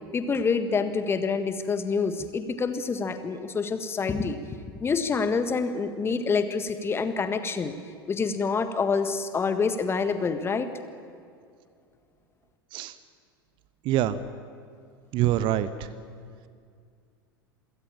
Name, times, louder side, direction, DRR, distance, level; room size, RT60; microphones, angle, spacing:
voice 1, 0.1-4.4 4.8-7.7 8.1-10.7, left 5 dB, 20° left, 10 dB, 1.6 m, -27 dB
voice 2, 13.8-14.2 15.1-15.9, right 12 dB, 40° right, 15 dB, 1.0 m, -25 dB
27.0 x 16.5 x 8.8 m, 2.2 s
figure-of-eight pair, 85°, 13 cm